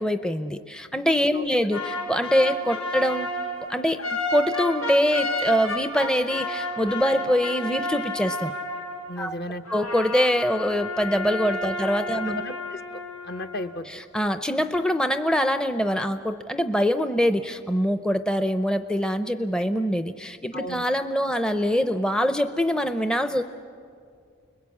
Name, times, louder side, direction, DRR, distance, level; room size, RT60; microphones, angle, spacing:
voice 1, 0.0-3.3 3.7-4.1 4.3-8.5 9.2-9.4 9.7-12.4 13.9-23.4, equal, 5° left, 8 dB, 0.6 m, -24 dB
sound 1, 1.7-9.2 9.7-13.7, left 1 dB, 85° left, 3.5 m, -31 dB
voice 2, 9.1-9.6 12.1-13.9 20.5-20.9, left 1 dB, 55° left, 7 dB, 1.0 m, -35 dB
30.0 x 21.5 x 8.5 m, 2.3 s
head